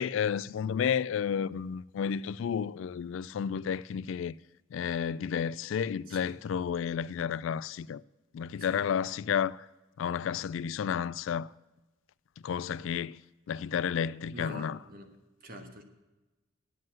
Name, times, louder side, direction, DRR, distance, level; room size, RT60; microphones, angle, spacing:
voice 1, 0.0-4.3 4.7-8.0 8.3-9.7 10.0-11.5 12.4-13.2 13.5-14.8, left 7 dB, 70° left, 0.3 m, -31 dB
voice 2, 8.6-9.0 14.3-15.1 15.4-15.8, right 1 dB, 45° right, 1.4 m, -45 dB
9.4 x 7.6 x 7.5 m
head